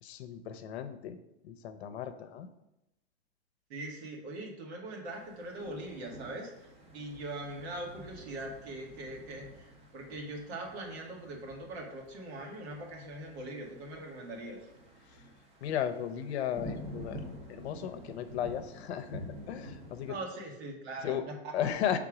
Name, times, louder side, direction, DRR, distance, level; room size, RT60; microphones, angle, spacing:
voice 1, 0.0-1.2 1.4-2.5 15.1-15.2 15.6-17.2 17.5-20.2 21.0-21.2 21.5-22.0, left 9 dB, 75° left, 8 dB, 0.7 m, -35 dB
voice 2, 3.7-14.6 20.1-21.5, right 1 dB, 70° right, 0 dB, 1.9 m, -41 dB
sound 1, 5.1-20.2, equal, 20° right, 0.7 m, -49 dB
5.9 x 3.6 x 4.9 m, 0.90 s
supercardioid pair, 150°, 33 cm